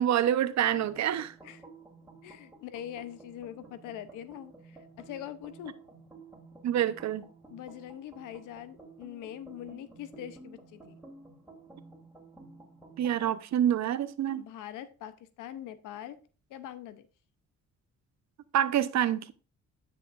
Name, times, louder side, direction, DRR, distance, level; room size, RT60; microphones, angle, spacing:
voice 1, 0.0-1.3 6.6-7.2 13.0-14.4 18.5-19.3, right 10 dB, 65° right, 0.8 m, -27 dB
sound 1, 0.6-13.4, right 3 dB, ahead, 3.1 m, -53 dB
voice 2, 2.2-5.8 7.5-11.0 14.4-16.2 16.5-17.1, left 11 dB, 90° left, 0.8 m, -43 dB
10.0 x 6.7 x 2.5 m
cardioid pair, 90°, 30 cm